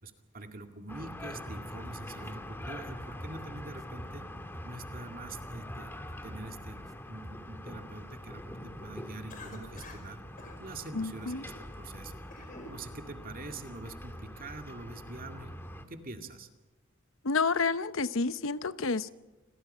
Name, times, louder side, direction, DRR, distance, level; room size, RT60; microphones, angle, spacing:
voice 1, 0.0-4.3 4.6-5.9 6.2-10.2 10.6-15.5 15.9-16.5, right 2 dB, 45° right, 2.2 m, -45 dB
sound 1, 0.9-15.8, left 1 dB, 10° left, 1.8 m, -44 dB
sound 2, 1.5-2.3 2.6-5.4 5.7-6.9 7.2-7.6, equal, 20° right, 1.8 m, -47 dB
Cough, 9.3-10.1 10.4-10.6 11.2-11.6 12.1-12.8, left 2 dB, 40° left, 4.9 m, -48 dB
voice 2, 10.9-11.4 17.2-19.1, left 4 dB, 75° left, 0.9 m, -29 dB
29.5 x 22.0 x 5.6 m
head